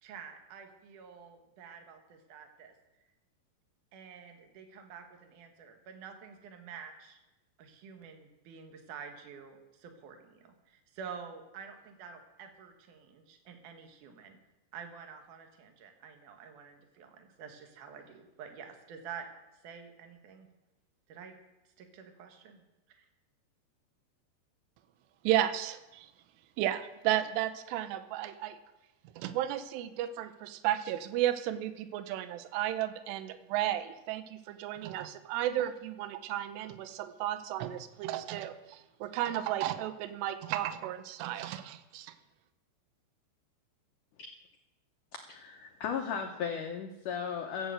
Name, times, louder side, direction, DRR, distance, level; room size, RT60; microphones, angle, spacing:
voice 1, 0.0-2.7 3.9-7.2 7.6-14.4 14.7-19.3 19.6-20.5 21.1-21.3 21.8-22.6 22.9-23.0, right 6 dB, 60° right, 5 dB, 2.5 m, -48 dB
voice 2, 25.2-26.1 26.6-28.6 29.2-42.1, right 12 dB, 80° right, 11 dB, 2.8 m, -33 dB
voice 3, 45.3-47.7, left 7 dB, 85° left, 3 dB, 1.8 m, -36 dB
14.5 x 8.1 x 7.8 m, 1.0 s
omnidirectional pair, 5.1 m